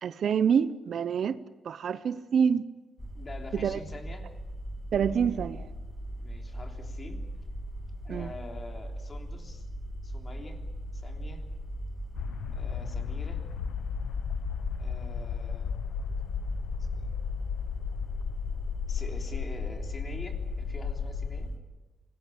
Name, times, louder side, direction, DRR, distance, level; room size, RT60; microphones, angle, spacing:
voice 1, 0.0-2.6 3.5-3.8 4.9-5.7 8.1-8.3, right 7 dB, 55° right, 0.8 m, -27 dB
sound 1, 3.0-21.6, right 1 dB, 10° left, 3.1 m, -39 dB
voice 2, 3.1-4.3 6.1-7.2 8.0-9.7 10.0-10.6 10.9-11.4 12.5-13.4 14.8-15.8 16.8-17.2 18.9-21.5, left 2 dB, 25° left, 3.4 m, -46 dB
sound 2, 12.1-21.5, left 8 dB, 80° left, 1.0 m, -35 dB
26.0 x 19.0 x 8.6 m
cardioid pair, 145°, 0 cm